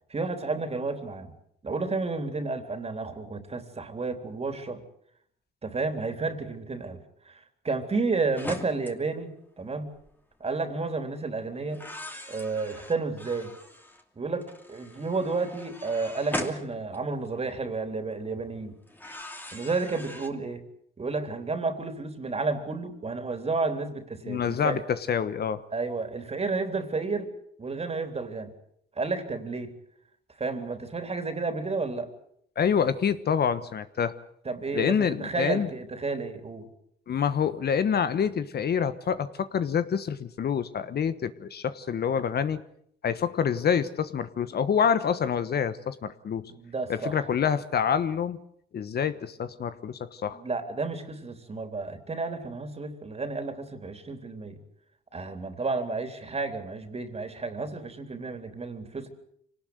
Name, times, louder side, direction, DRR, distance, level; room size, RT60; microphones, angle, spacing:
voice 1, 0.1-1.3 1.6-4.8 5.6-9.3 9.6-9.9 10.4-11.8 12.3-13.5 14.2-18.7 19.5-20.6 21.0-24.8 25.7-27.3 27.6-28.5 29.0-29.7 30.4-32.1 34.5-36.7 46.5-47.2 50.3-54.6 55.1-59.1, right 3 dB, 30° right, 8 dB, 3.6 m, -31 dB
sound 1, 8.3-8.9 9.9-10.1 11.7-14.0 14.4-17.5 18.9-20.3, left 1 dB, 10° left, 2.8 m, -40 dB
voice 2, 24.2-25.6 32.6-34.1 34.7-35.7 37.1-42.6 43.0-46.5 46.9-48.4 48.7-50.4, left 7 dB, 55° left, 13 dB, 1.2 m, -27 dB
24.5 x 19.0 x 8.0 m, 0.68 s
cardioid pair, 90°, 20 cm